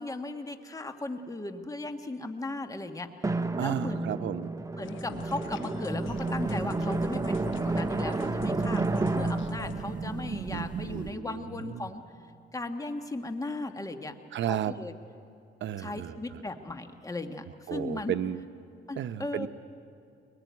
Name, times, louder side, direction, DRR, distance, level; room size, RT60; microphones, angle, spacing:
voice 1, 0.0-4.1 4.8-12.0 12.5-14.1 14.5-14.9 15.8-18.2 18.9-19.5, left 2 dB, 15° left, 7 dB, 1.5 m, -37 dB
Drum, 3.2-11.5, right 2 dB, 15° right, 0.8 m, -31 dB
voice 2, 3.6-4.5 10.5-11.9 14.3-14.7 15.6-16.4 17.7-18.4 19.0-19.5, right 10 dB, 70° right, 10 dB, 0.9 m, -33 dB
sound 1, 4.8-9.9, left 9 dB, 80° left, 0.9 m, -46 dB
sound 2, 6.1-11.1, right 7 dB, 40° right, 0.6 m, -38 dB
23.0 x 20.0 x 9.5 m, 2.4 s
cardioid pair, 90°, 20 cm